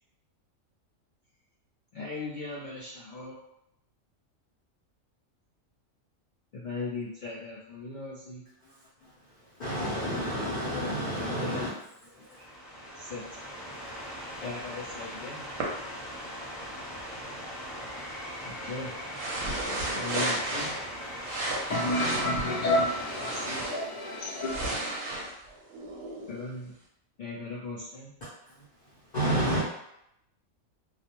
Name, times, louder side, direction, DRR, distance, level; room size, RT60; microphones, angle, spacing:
voice 1, 1.9-3.3 6.5-8.4 11.1-11.7 13.0-13.2 14.4-15.4 18.4-18.9 19.9-20.7 23.2-23.6 26.3-26.7 27.2-28.1, left 3 dB, 85° left, -6 dB, 0.4 m, -38 dB
voice 2, 9.6-11.7 12.2-12.3 29.1-29.6, right 1 dB, 45° left, -9 dB, 0.7 m, -29 dB
sound 1, 12.1-23.7, equal, ahead, 0.7 m, -40 dB
sound 2, 15.6-15.7 19.1-20.9 21.2-23.9 24.3-26.5, right 2 dB, 65° right, 0.8 m, -34 dB
voice 3, 21.7-24.8, left 1 dB, 70° left, -5 dB, 1.1 m, -29 dB
2.3 x 2.0 x 2.9 m, 0.79 s
omnidirectional pair, 1.4 m